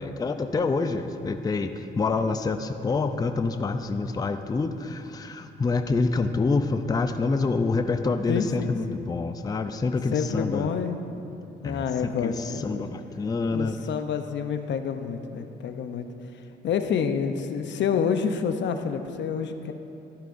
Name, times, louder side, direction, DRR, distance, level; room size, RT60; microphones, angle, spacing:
voice 1, 0.0-10.7 11.6-13.7, left 3 dB, 20° left, 8 dB, 0.4 m, -27 dB
voice 2, 8.3-9.0 10.1-11.0 11.6-12.9 13.5-16.1 16.6-19.7, left 7 dB, 65° left, 7 dB, 0.7 m, -28 dB
14.0 x 10.5 x 2.6 m, 2.8 s
cardioid pair, 90°, 20 cm